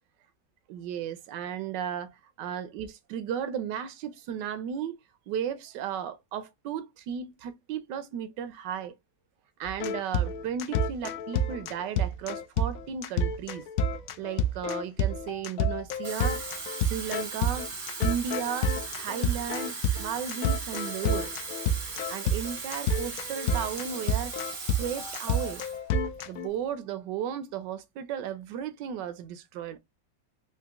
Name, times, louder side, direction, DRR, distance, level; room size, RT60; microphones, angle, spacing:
voice 1, 0.7-5.0 5.3-8.9 9.6-13.6 14.2-16.4 16.9-17.7 18.0-18.7 19.0-21.3 22.1-24.3 24.6-25.6 26.3-29.8, right 8 dB, 75° right, 1.2 m, -35 dB
sound 1, 9.7-26.5, left 1 dB, 80° left, 0.7 m, -29 dB
Water tap faucet / Fill (with liquid), 15.9-25.8 26.2-26.4, right 4 dB, 40° right, 0.7 m, -38 dB
3.9 x 2.8 x 2.4 m
omnidirectional pair, 2.0 m